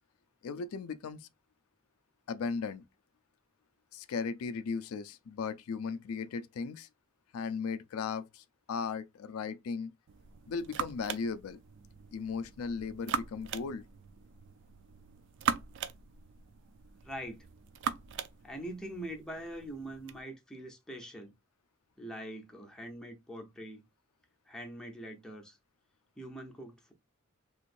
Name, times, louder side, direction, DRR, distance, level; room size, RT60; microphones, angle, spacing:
voice 1, 0.4-1.3 2.3-2.8 3.9-6.9 7.3-9.9 10.5-11.6 12.1-13.8, left 5 dB, 80° left, 0.4 m, -37 dB
sound 1, 10.1-20.2, right 7 dB, 55° right, 0.4 m, -40 dB
voice 2, 17.0-17.5 18.4-21.3 22.0-23.8 24.5-25.6 26.2-26.9, right 1 dB, 5° left, 0.7 m, -43 dB
3.1 x 3.1 x 2.5 m
head